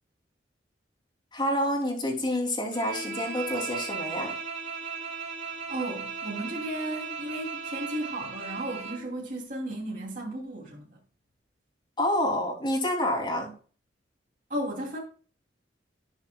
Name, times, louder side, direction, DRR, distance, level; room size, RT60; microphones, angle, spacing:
voice 1, 1.3-4.3 12.0-13.5, left 1 dB, 25° left, 3.0 m, -28 dB
Bowed string instrument, 2.7-9.1, right 5 dB, 85° right, 2.3 m, -36 dB
voice 2, 5.7-10.9 14.5-15.0, right 1 dB, 45° right, 2.9 m, -34 dB
18.5 x 6.5 x 2.3 m
head